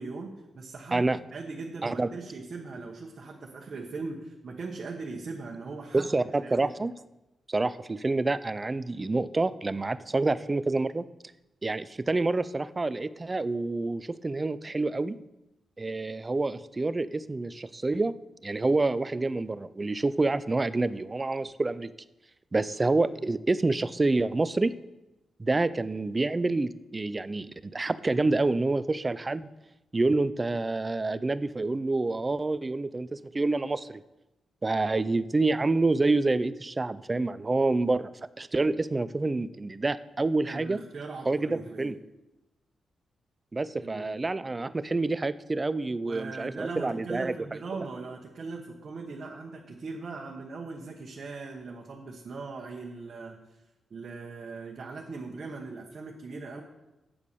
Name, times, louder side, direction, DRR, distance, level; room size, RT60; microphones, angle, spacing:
voice 1, 0.0-6.7 40.4-42.0 43.8-44.2 46.0-53.3 53.9-56.6, right 4 dB, 40° right, -1 dB, 1.2 m, -40 dB
voice 2, 5.9-6.9 7.5-11.1 11.6-15.2 15.8-18.1 18.4-21.9 22.5-24.7 25.4-29.5 29.9-34.0 34.6-38.1 38.4-40.8 41.3-42.0 43.5-47.6, right 3 dB, 20° right, 15 dB, 0.4 m, -27 dB
8.6 x 8.1 x 6.9 m, 0.98 s
wide cardioid pair, 165°, 0 cm